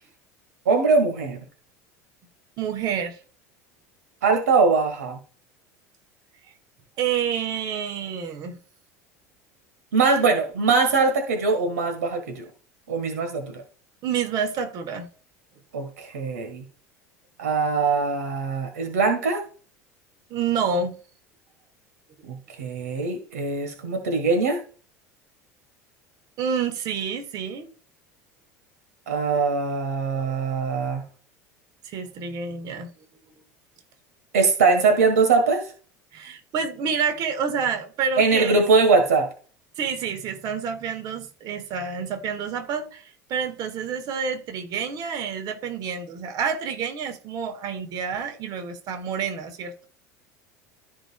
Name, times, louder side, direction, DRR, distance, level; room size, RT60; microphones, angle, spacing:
voice 1, 0.6-1.4 4.2-5.2 9.9-12.4 12.9-13.6 15.7-16.6 17.4-19.4 22.3-24.6 29.1-31.0 34.3-35.6 38.2-39.3, right 4 dB, 80° right, 1.5 m, -22 dB
voice 2, 2.6-3.2 7.0-8.6 14.0-15.1 20.3-20.9 26.4-27.7 31.9-32.9 36.1-38.6 39.8-49.9, right 6 dB, 50° right, 1.7 m, -28 dB
14.0 x 5.0 x 2.3 m
hypercardioid pair, 75°, 9 cm